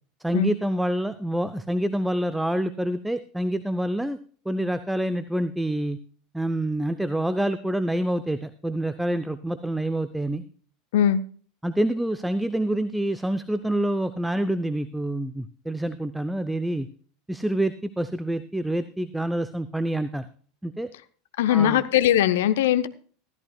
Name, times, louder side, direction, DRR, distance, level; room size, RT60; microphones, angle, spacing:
voice 1, 0.2-4.2 4.5-6.0 6.3-10.4 11.6-16.9 17.3-20.3 20.6-20.9 21.5-21.8, right 1 dB, 5° right, 12 dB, 0.6 m, -27 dB
voice 2, 21.4-22.9, left 10 dB, 65° left, 13 dB, 0.7 m, -20 dB
14.0 x 13.5 x 2.3 m, 0.43 s
figure-of-eight pair, 80°, 0 cm